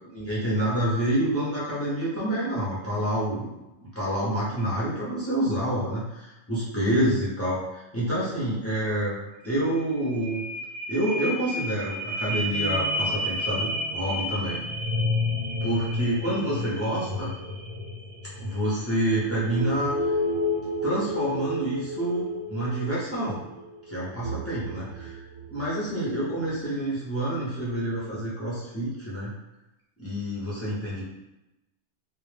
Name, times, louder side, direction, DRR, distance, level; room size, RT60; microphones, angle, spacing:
voice 1, 0.1-3.5 3.8-9.2 9.4-10.4 10.9-14.6 15.6-17.3 18.4-20.0 20.8-23.4 23.9-25.2 25.5-29.3 30.0-31.0, right 1 dB, 20° left, -9 dB, 0.4 m, -28 dB
sound 1, 9.4-9.5 9.8-25.7 26.2-26.3, left 1 dB, 90° right, 1.0 m, -31 dB
2.1 x 2.0 x 3.1 m, 0.96 s
omnidirectional pair, 1.3 m